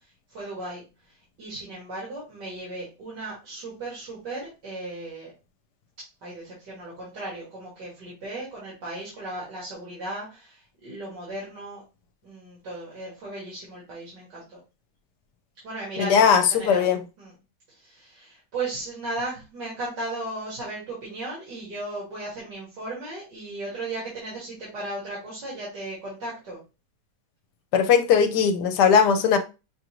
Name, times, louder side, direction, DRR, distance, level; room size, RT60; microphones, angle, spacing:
voice 1, 0.3-0.8 1.4-5.3 6.2-11.8 12.2-14.6 15.6-16.9 17.2-17.3 17.8-26.6, right 2 dB, 75° right, 2.3 m, -36 dB
voice 2, 16.0-17.0 27.7-29.4, left 7 dB, 75° left, 1.2 m, -19 dB
6.2 x 2.5 x 2.9 m
omnidirectional pair, 1.8 m